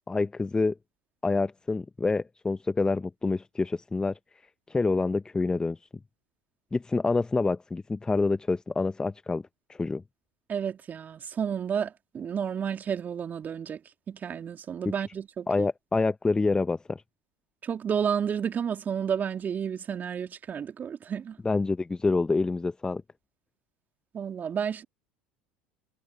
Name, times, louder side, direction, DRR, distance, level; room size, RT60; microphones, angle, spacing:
voice 1, 0.1-0.7 1.2-4.2 4.7-5.9 6.7-9.4 9.7-10.0 15.5-17.0 21.4-23.0, left 3 dB, 15° left, 1.0 m, -27 dB
voice 2, 10.5-13.8 14.1-15.7 17.6-21.4 24.1-24.8, right 7 dB, 35° right, 3.4 m, -31 dB
hypercardioid pair, 75°, 5 cm